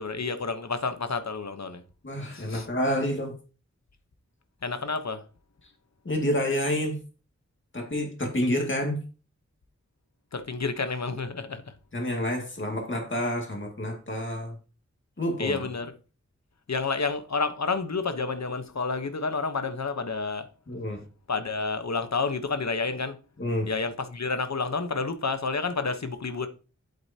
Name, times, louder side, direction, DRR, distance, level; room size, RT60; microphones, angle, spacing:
voice 1, 0.0-1.8 2.3-2.7 4.6-5.3 10.3-11.7 15.4-15.9 16.7-20.5 21.3-23.2 23.7-26.5, left 4 dB, 65° left, 1.0 m, -30 dB
voice 2, 2.0-3.3 6.0-7.0 7.7-9.1 11.9-14.6 15.2-15.6 20.7-21.0 23.4-23.7, equal, 40° left, 2.2 m, -28 dB
8.2 x 8.0 x 2.8 m
wide cardioid pair, 60°, 29 cm